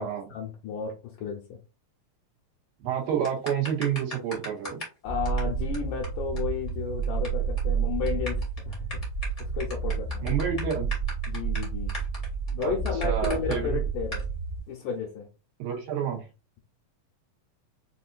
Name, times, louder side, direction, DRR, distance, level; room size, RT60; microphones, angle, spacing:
voice 1, 0.0-1.6 5.0-8.8 9.4-10.3 11.3-11.9 12.5-14.2 14.7-15.3, left 6 dB, 75° left, 2.1 m, -33 dB
voice 2, 2.8-4.8 10.2-10.9 12.6-12.7 13.0-13.8 15.6-16.2, right 8 dB, 85° right, 3.2 m, -29 dB
sound 1, 3.2-5.0 5.2-5.4 5.7-5.8 6.0-6.1 6.4-6.5 6.7-7.3 7.6-7.7 8.1-13.6 14.1-14.2, left 1 dB, 30° left, 0.6 m, -38 dB
sound 2, 5.0-14.6, right 5 dB, 55° right, 1.3 m, -30 dB
6.3 x 2.6 x 2.4 m
omnidirectional pair, 4.1 m